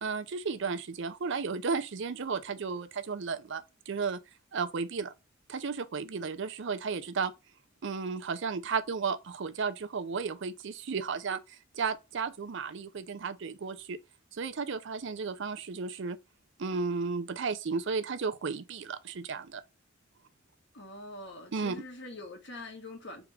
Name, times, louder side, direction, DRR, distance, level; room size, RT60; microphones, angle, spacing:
voice 1, 0.0-4.2 4.5-5.1 5.5-7.3 7.8-14.0 14.3-16.2 16.6-19.6 21.5-21.8, right 5 dB, 60° right, 0.5 m, -34 dB
voice 2, 20.7-23.2, left 2 dB, 55° left, 1.5 m, -44 dB
3.6 x 3.0 x 4.8 m
head